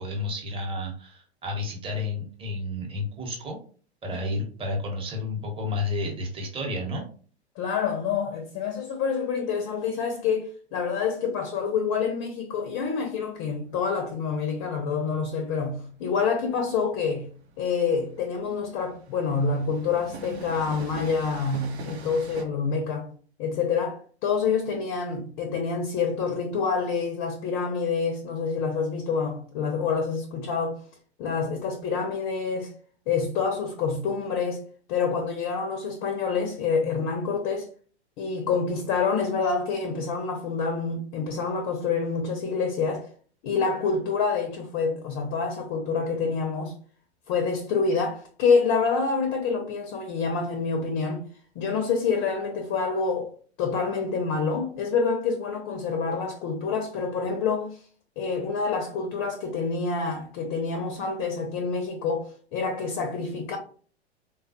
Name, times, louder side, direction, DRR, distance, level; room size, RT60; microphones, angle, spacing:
voice 1, 0.0-3.6 4.0-7.0, left 2 dB, 15° right, 0.8 m, -31 dB
voice 2, 7.6-17.3 17.6-23.1 23.4-30.8 31.2-32.7 33.1-34.6 34.9-37.7 38.2-43.1 43.4-46.7 47.3-51.3 51.6-53.3 53.6-57.8 58.2-63.6, left 5 dB, 30° left, 0.5 m, -27 dB
Train, 13.3-22.4, right 3 dB, 70° right, 0.7 m, -44 dB
3.3 x 2.2 x 2.7 m
figure-of-eight pair, 100°, 34 cm